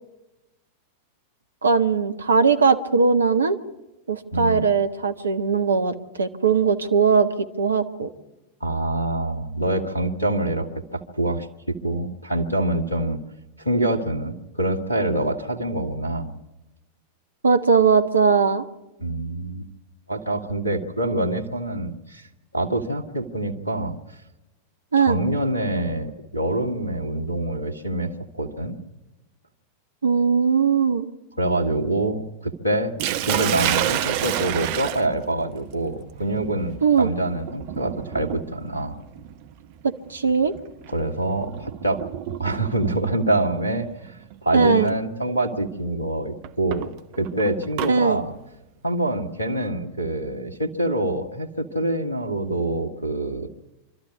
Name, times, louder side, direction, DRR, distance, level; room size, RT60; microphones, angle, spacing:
voice 1, 1.6-3.6 4.1-7.3 7.6-8.1 17.4-18.6 24.9-25.2 30.0-31.1 36.8-37.1 39.8-40.5 44.5-44.9 47.9-48.2, right 5 dB, 75° right, 9 dB, 1.5 m, -19 dB
voice 2, 4.3-4.6 8.6-13.2 13.6-16.4 19.0-19.7 20.1-22.3 22.5-24.0 25.0-28.1 28.4-28.8 31.4-32.9 33.2-39.0 40.9-42.0 42.4-44.1 44.4-48.3 48.8-53.5, right 1 dB, 85° left, 3 dB, 1.8 m, -25 dB
Sink (filling or washing), 33.0-42.9 44.0-44.4 44.9-45.0 46.4-47.9, right 11 dB, 50° right, 1.1 m, -30 dB
25.5 x 13.5 x 9.5 m, 1.0 s
figure-of-eight pair, 90°, 0 cm